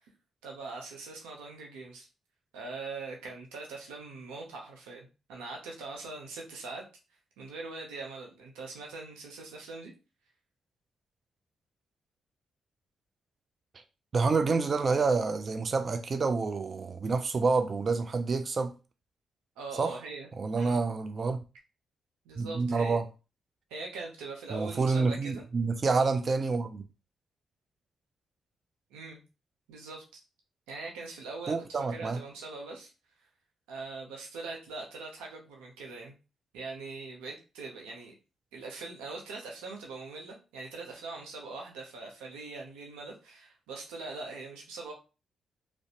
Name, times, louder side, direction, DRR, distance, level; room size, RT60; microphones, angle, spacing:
voice 1, 0.4-2.1 2.5-6.8 7.4-9.9 19.6-20.8 22.2-23.0 23.7-25.5 28.9-29.2 29.7-30.2 30.7-32.9 33.7-36.1 36.5-38.1 38.5-44.9, right 3 dB, 90° right, 0.6 m, -42 dB
voice 2, 14.1-18.7 19.8-20.0 20.4-21.4 22.4-23.0 24.5-26.9 31.5-32.2, right 4 dB, 50° right, 0.3 m, -28 dB
2.5 x 2.1 x 2.8 m
supercardioid pair, 50°, 0 cm